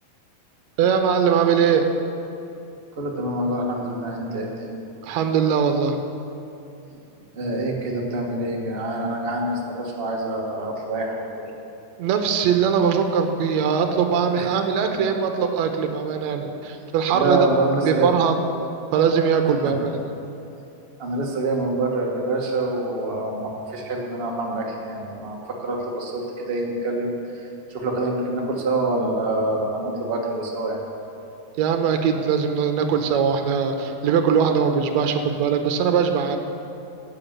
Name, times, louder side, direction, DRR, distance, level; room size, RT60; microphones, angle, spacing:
voice 1, 0.8-1.8 5.0-6.0 12.0-17.5 17.8-18.4 18.9-20.0 31.6-36.4, right 7 dB, 70° right, 5 dB, 2.0 m, -21 dB
voice 2, 3.0-4.8 7.3-11.3 14.4-14.5 17.1-18.1 21.0-27.1 27.7-30.8, right 2 dB, 55° right, -1 dB, 0.6 m, -26 dB
10.5 x 8.5 x 7.3 m, 2.7 s
omnidirectional pair, 3.5 m